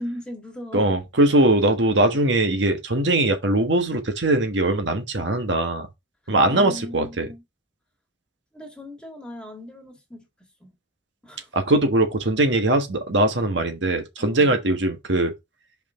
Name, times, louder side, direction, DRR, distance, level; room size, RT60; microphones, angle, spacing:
voice 1, 0.0-0.9 1.4-1.5 6.2-7.4 8.5-10.7 11.2-11.6 14.2-14.6, left 1 dB, 5° left, 1.9 m, -38 dB
voice 2, 0.7-5.9 6.3-7.3 11.5-15.3, right 2 dB, 90° right, 1.3 m, -21 dB
5.4 x 5.1 x 3.6 m
head